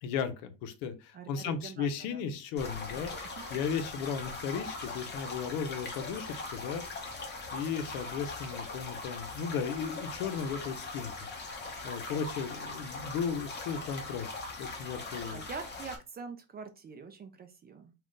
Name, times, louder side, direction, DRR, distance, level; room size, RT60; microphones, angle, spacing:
voice 1, 0.0-11.3 11.8-14.3 14.6-15.4, left 6 dB, 70° left, 9 dB, 0.7 m, -36 dB
voice 2, 1.1-2.2 2.9-3.1 15.3-17.9, right 5 dB, 25° right, 7 dB, 0.4 m, -45 dB
sound 1, 2.6-16.0, left 3 dB, 25° left, 0.8 m, -41 dB
2.5 x 2.4 x 3.6 m, 0.28 s
supercardioid pair, 100°, 42 cm